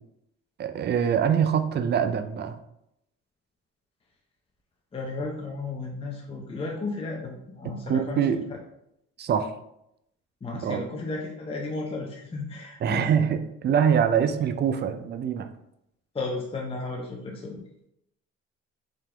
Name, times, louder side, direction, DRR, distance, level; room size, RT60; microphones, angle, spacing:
voice 1, 0.6-2.6 7.9-8.4 9.2-9.5 10.6-10.8 12.8-15.5, right 8 dB, 35° right, 9 dB, 0.4 m, -24 dB
voice 2, 4.9-8.3 10.4-13.3 16.1-17.6, left 3 dB, 20° left, -1 dB, 0.5 m, -34 dB
3.7 x 2.8 x 3.3 m, 0.80 s
cardioid pair, 90°, 30 cm